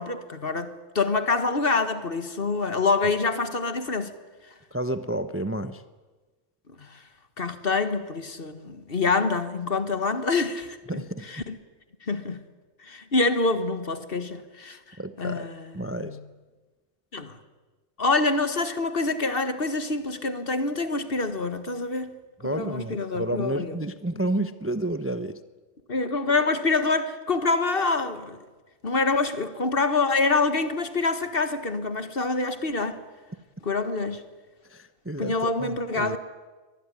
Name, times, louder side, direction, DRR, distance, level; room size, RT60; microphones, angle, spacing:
voice 1, 0.0-4.1 6.8-7.0 7.4-11.0 11.3-11.6 12.1-12.4 12.8-15.7 16.0-16.2 17.1-17.4 18.0-22.1 22.4-23.8 25.9-28.4 28.8-33.0 33.6-34.2 35.2-36.2, left 3 dB, 45° left, 1.8 m, -26 dB
voice 2, 4.7-5.8 10.9-11.3 15.0-15.5 15.7-16.2 22.4-25.4 34.6-36.2, right 1 dB, 10° right, 0.7 m, -30 dB
24.0 x 19.5 x 9.9 m
omnidirectional pair, 1.3 m